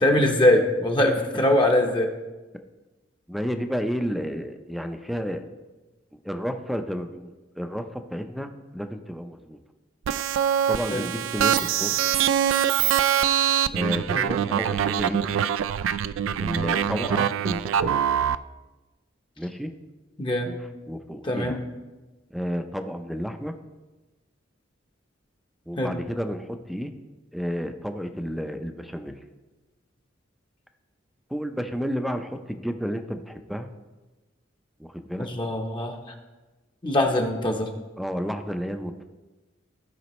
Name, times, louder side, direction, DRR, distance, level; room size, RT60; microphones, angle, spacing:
voice 1, 0.0-2.1 10.9-11.0 14.1-14.3 20.2-20.5 21.2-21.5 25.8-25.9 35.2-36.0 36.8-37.7, left 1 dB, 25° left, 3 dB, 0.8 m, -22 dB
voice 2, 3.3-5.5 6.1-9.6 10.7-12.0 13.7-15.3 16.4-18.1 19.4-19.7 20.4-21.6 22.3-23.5 25.7-26.9 27.3-29.2 31.3-33.7 34.8-35.3 38.0-39.0, equal, ahead, 7 dB, 0.5 m, -31 dB
sound 1, 10.1-18.4, right 9 dB, 80° right, 0.3 m, -24 dB
15.0 x 5.1 x 3.1 m, 1.2 s
head